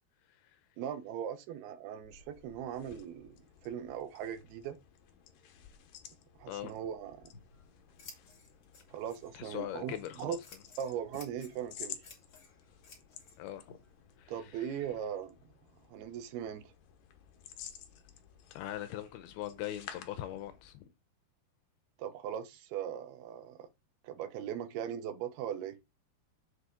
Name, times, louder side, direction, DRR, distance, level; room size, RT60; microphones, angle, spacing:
voice 1, 0.8-3.4 3.6-4.8 6.4-7.3 8.9-10.4 10.8-12.0 14.3-15.5 15.9-16.7 22.0-23.7 24.0-25.8, right 9 dB, 80° right, 2.9 m, -39 dB
sound 1, 1.9-20.8, left 9 dB, 70° left, 2.5 m, -53 dB
Scissors, 7.1-15.2, left 4 dB, 35° left, 2.5 m, -58 dB
voice 2, 9.3-10.4 13.4-13.8 14.2-14.7 18.5-20.8, left 13 dB, 85° left, 2.6 m, -41 dB
7.7 x 6.5 x 3.8 m
omnidirectional pair, 4.5 m